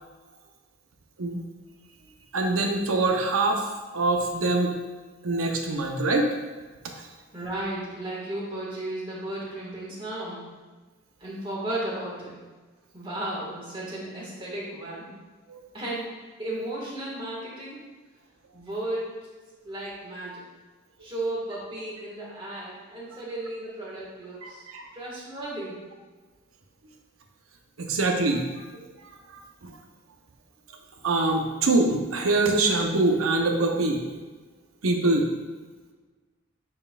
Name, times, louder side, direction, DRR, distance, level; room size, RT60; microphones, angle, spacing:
voice 1, 2.3-3.6 3.9-4.7 5.2-6.3 15.5-15.6 24.4-24.9 27.8-28.7 29.6-29.7 31.0-34.0 34.8-35.3, right 2 dB, 90° right, 3 dB, 0.8 m, -24 dB
voice 2, 7.3-10.5 11.2-12.4 12.9-15.1 15.7-17.8 18.5-19.3 19.6-20.5 21.0-24.7 24.9-25.8, right 1 dB, 25° right, -5 dB, 1.6 m, -34 dB
8.7 x 4.5 x 2.4 m, 1.3 s
head